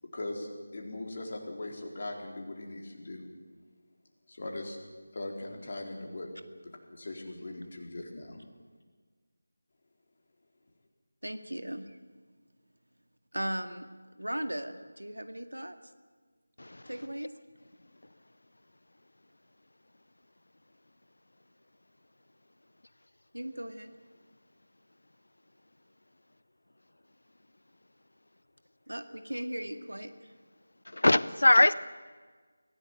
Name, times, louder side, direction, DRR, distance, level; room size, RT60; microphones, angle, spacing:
voice 1, 0.0-3.3 4.3-4.8 5.1-6.3 6.6-8.4, left 2 dB, 40° left, 1 dB, 4.2 m, -40 dB
voice 2, 11.2-12.0 13.3-13.9 14.2-15.8 16.9-17.3 23.3-23.9 28.9-30.3, right 1 dB, 80° right, 8 dB, 2.1 m, -37 dB
voice 3, 30.9-31.7, left 1 dB, 65° left, 18 dB, 0.6 m, -22 dB
24.0 x 16.5 x 9.0 m, 1.5 s
figure-of-eight pair, 165°, 0 cm